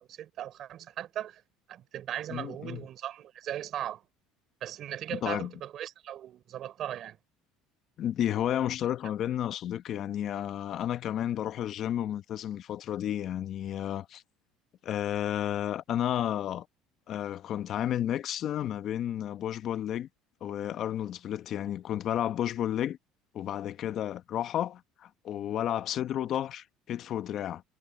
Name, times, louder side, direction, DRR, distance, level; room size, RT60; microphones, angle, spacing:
voice 1, 0.0-1.4 1.7-4.0 4.6-7.2, right 11 dB, 50° right, 5.1 m, -38 dB
voice 2, 2.3-2.8 5.1-5.5 8.0-14.2 14.8-16.7 17.1-20.1 20.4-23.0 23.3-27.6, left 11 dB, 50° left, 1.2 m, -32 dB
cardioid pair, 120°, 0 cm